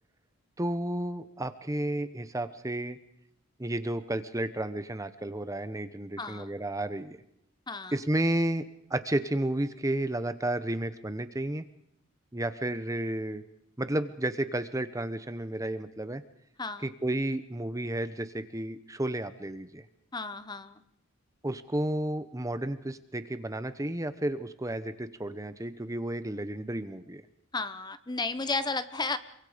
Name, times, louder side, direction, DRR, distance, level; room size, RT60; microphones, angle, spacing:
voice 1, 0.6-3.0 3.6-7.2 7.9-8.6 8.9-11.6 12.3-13.4 13.8-16.2 16.8-19.9 21.4-27.2, right 1 dB, 15° right, 11 dB, 0.9 m, -32 dB
voice 2, 6.2-6.5 7.7-7.9 16.6-16.9 20.1-20.8 27.5-29.2, left 3 dB, 20° left, 12 dB, 1.0 m, -33 dB
27.0 x 23.5 x 5.1 m, 0.75 s
head